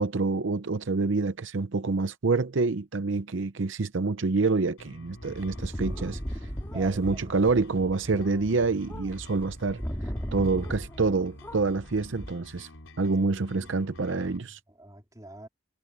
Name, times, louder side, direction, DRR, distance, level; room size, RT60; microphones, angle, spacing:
voice 1, 0.0-6.5 6.7-9.8 10.3-12.7 13.0-14.6, right 3 dB, 70° right, 0.7 m, -27 dB
sound 1, 4.8-14.4, left 1 dB, 80° left, 4.2 m, -48 dB
sound 2, 5.2-11.2 11.4-12.3, equal, 10° left, 2.1 m, -37 dB
voice 2, 6.7-7.4 13.5-13.8 14.2-15.5, right 1 dB, 15° right, 3.6 m, -46 dB
head